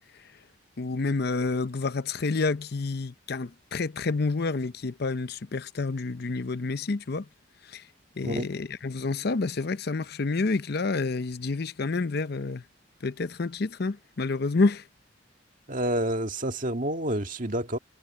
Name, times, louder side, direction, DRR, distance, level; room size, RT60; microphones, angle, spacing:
voice 1, 0.8-7.3 7.7-7.8 8.2-12.6 13.0-14.8, left 3 dB, 60° left, 0.7 m, -29 dB
voice 2, 15.7-17.8, right 1 dB, 45° right, 2.1 m, -28 dB
head